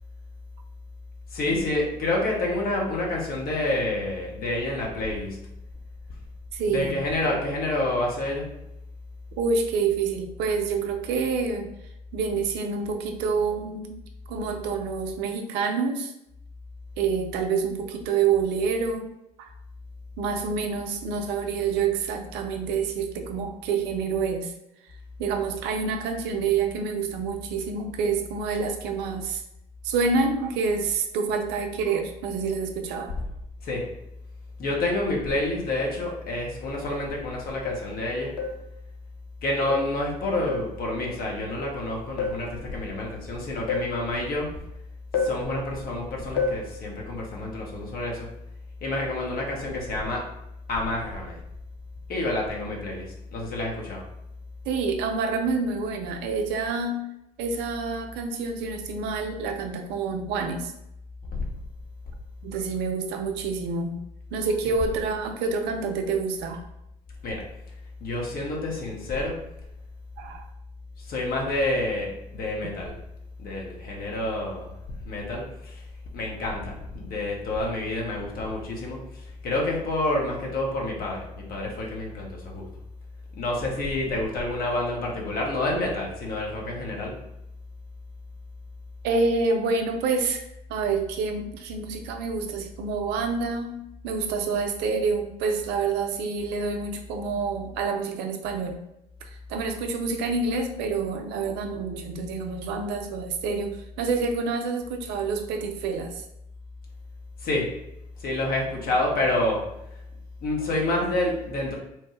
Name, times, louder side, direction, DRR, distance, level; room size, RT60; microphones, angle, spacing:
voice 1, 1.3-5.5 6.7-8.5 33.6-33.9 34.6-38.4 39.4-44.6 45.2-48.3 48.8-50.3 50.7-51.4 52.1-54.1 61.3-61.4 64.6-64.7 67.2-67.5 68.0-69.4 71.0-73.0 73.4-74.8 75.0-75.8 76.1-82.7 83.3-87.2 107.4-107.8 108.2-109.8 110.4-111.7, left 2 dB, 45° left, -1 dB, 0.9 m, -28 dB
voice 2, 6.5-7.0 9.4-11.7 12.1-14.0 14.3-16.1 17.0-19.1 19.4-19.5 20.2-24.5 25.2-29.4 29.8-33.1 54.7-57.1 57.4-60.7 62.4-64.0 64.3-66.6 70.2-70.4 89.0-98.8 99.2-106.2, right 4 dB, 55° right, 5 dB, 0.4 m, -27 dB
sound 1, 37.7-38.0 38.4-38.7 39.7-40.0 40.5-40.8 42.2-42.5 43.7-44.0 45.1-45.5 46.4-46.7, left 4 dB, 70° left, 0.5 m, -29 dB
3.0 x 2.1 x 3.1 m, 0.83 s
figure-of-eight pair, 55°, 21 cm